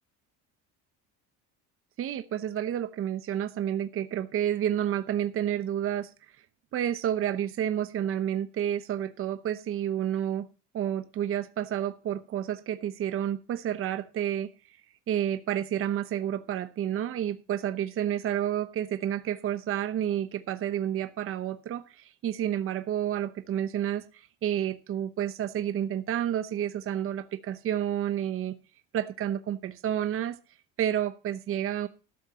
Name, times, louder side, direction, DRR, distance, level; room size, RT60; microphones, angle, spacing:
voice 1, 2.0-6.1 6.7-10.5 10.7-14.5 15.1-28.6 28.9-30.4 30.8-31.9, right 10 dB, 45° right, 11 dB, 0.9 m, -30 dB
13.0 x 7.3 x 5.6 m, 0.34 s
cardioid pair, 140°, 31 cm